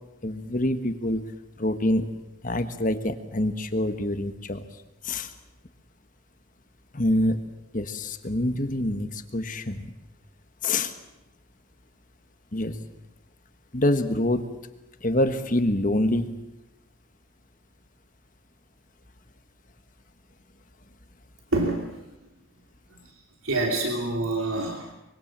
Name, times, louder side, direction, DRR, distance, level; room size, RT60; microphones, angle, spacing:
voice 1, 0.2-1.3 1.6-2.1 2.4-4.7 5.0-5.3 6.9-7.5 7.7-9.9 10.6-10.9 12.5-12.8 13.7-14.5 15.0-16.4, left 1 dB, 40° left, 8 dB, 1.5 m, -26 dB
voice 2, 21.5-22.0 22.9-24.9, right 2 dB, 85° right, 2 dB, 2.8 m, -27 dB
24.5 x 24.0 x 7.5 m, 0.94 s
head